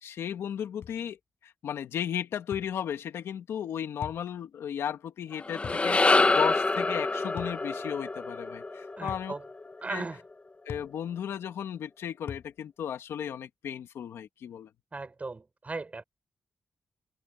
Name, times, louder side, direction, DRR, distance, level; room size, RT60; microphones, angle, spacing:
voice 1, 0.0-9.3 9.9-10.0 10.7-14.7, left 9 dB, 90° left, 2.5 m, -35 dB
sound 1, 0.8-1.0 2.5-2.7 4.0-4.3 5.6-5.9 7.4-7.6 9.1-9.3 10.7-10.9 12.3-12.5, left 7 dB, 70° left, 7.3 m, -41 dB
sound 2, 5.3-9.8, left 3 dB, 30° left, 1.0 m, -26 dB
voice 2, 9.0-9.5 9.8-10.2 14.9-16.0, right 3 dB, 35° right, 5.6 m, -37 dB
cardioid pair, 75°, 4 cm